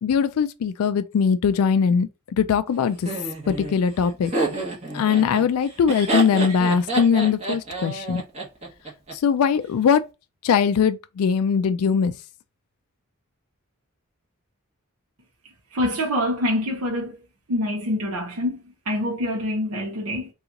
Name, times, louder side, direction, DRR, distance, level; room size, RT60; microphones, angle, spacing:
voice 1, 0.0-2.1 2.4-3.1 3.5-4.3 4.9-8.2 9.2-10.0 10.4-12.1, left 6 dB, 75° left, 0.3 m, -21 dB
Laughter, 3.0-9.1, right 2 dB, 30° right, 1.0 m, -28 dB
voice 2, 15.7-17.2 17.5-20.3, left 1 dB, 70° right, 0.7 m, -25 dB
2.9 x 2.4 x 3.8 m
head